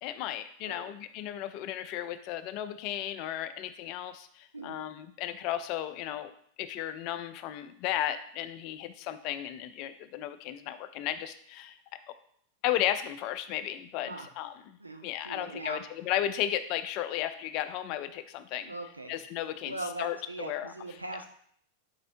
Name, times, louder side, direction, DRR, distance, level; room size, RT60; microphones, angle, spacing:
voice 1, 0.0-6.3 6.6-11.8 12.6-14.5 15.0-18.7 19.1-20.7, left 12 dB, 40° left, 11 dB, 0.3 m, -34 dB
voice 2, 14.8-15.8 18.7-19.1 19.6-21.3, right 2 dB, 85° right, 5 dB, 0.5 m, -40 dB
4.4 x 4.1 x 2.5 m, 0.64 s
figure-of-eight pair, 90°, 0 cm